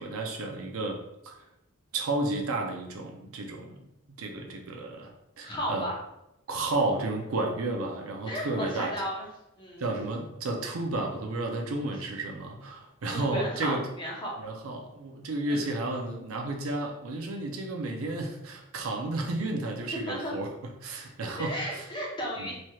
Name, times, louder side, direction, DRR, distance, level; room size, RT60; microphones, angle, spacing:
voice 1, 0.0-1.3 1.9-3.8 4.1-5.1 5.4-5.9 6.5-8.9 9.8-13.8 14.4-20.5 20.8-21.8 22.4-22.6, right 2 dB, 85° right, 2 dB, 0.5 m, -32 dB
voice 2, 5.4-5.9 8.3-9.3 9.6-9.9 11.8-11.9 13.0-14.3 15.5-15.8 19.9-20.3 21.4-22.6, equal, 25° left, -3 dB, 0.8 m, -34 dB
3.1 x 2.9 x 2.3 m, 0.85 s
head